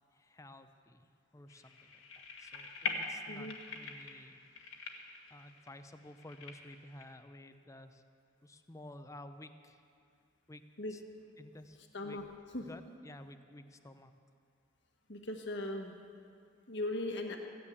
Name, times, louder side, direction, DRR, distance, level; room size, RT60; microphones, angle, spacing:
voice 1, 0.1-1.1 1.3-4.4 4.8-4.9 5.3-8.0 8.4-9.8 10.5-11.0 11.4-12.2 12.6-14.1, left 1 dB, 15° left, 9 dB, 0.6 m, -53 dB
sound 1, 1.5-7.0, left 4 dB, 85° left, 1.6 m, -43 dB
voice 2, 3.3-3.6 10.8-10.9 11.9-12.2 12.5-12.6 15.1-15.9 16.7-17.4, left 1 dB, 60° left, 3 dB, 1.4 m, -38 dB
15.5 x 9.8 x 8.5 m, 2.3 s
head